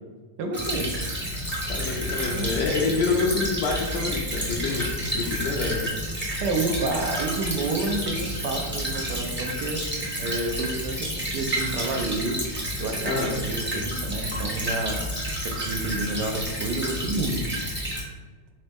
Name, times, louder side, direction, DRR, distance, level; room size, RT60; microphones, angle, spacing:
voice 1, 0.4-0.9 2.3-2.5 6.4-9.8 10.2-12.4 12.8-15.0 15.4-17.4, right 2 dB, 75° right, 4 dB, 1.2 m, -29 dB
Stream / Trickle dribble, 0.5-18.0, equal, 10° right, 0.5 m, -30 dB
voice 2, 1.7-5.9 13.0-13.4, left 4 dB, 75° left, -3 dB, 1.2 m, -27 dB
4.1 x 3.8 x 3.4 m, 1.4 s
omnidirectional pair, 1.9 m